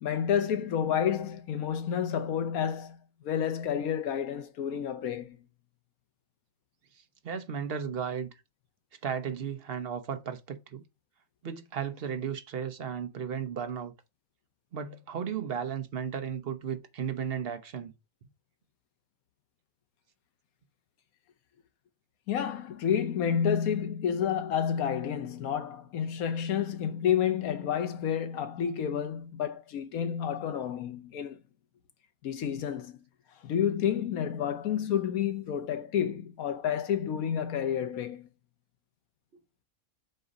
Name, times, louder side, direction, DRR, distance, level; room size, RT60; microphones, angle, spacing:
voice 1, 0.0-5.4 22.3-31.4 32.2-33.0 33.4-38.3, left 8 dB, 85° left, 1.3 m, -30 dB
voice 2, 7.2-8.3 9.0-10.8 11.4-13.9 14.7-17.9, right 7 dB, 50° right, 0.9 m, -34 dB
7.8 x 2.7 x 5.1 m
omnidirectional pair, 1.5 m